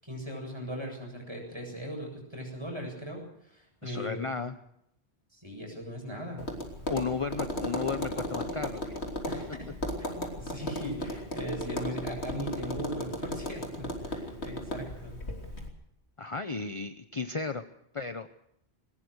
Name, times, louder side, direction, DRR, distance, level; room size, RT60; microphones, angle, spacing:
voice 1, 0.0-4.3 5.3-6.5 9.3-9.7 10.0-15.2, equal, 25° right, 1 dB, 7.8 m, -39 dB
voice 2, 3.8-4.5 6.9-9.0 16.2-17.6 17.9-18.3, left 5 dB, 30° left, 9 dB, 0.9 m, -34 dB
Tap, 6.4-15.7, equal, 85° left, 3.6 m, -36 dB
21.0 x 20.0 x 6.5 m, 0.75 s
omnidirectional pair, 1.1 m